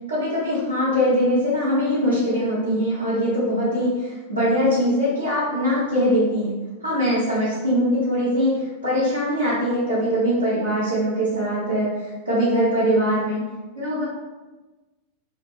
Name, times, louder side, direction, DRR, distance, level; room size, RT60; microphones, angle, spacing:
voice 1, 0.1-6.5 6.8-13.4 13.7-14.0, equal, 80° right, -11 dB, 0.9 m, -22 dB
2.7 x 2.2 x 2.2 m, 1.2 s
figure-of-eight pair, 90°, 0 cm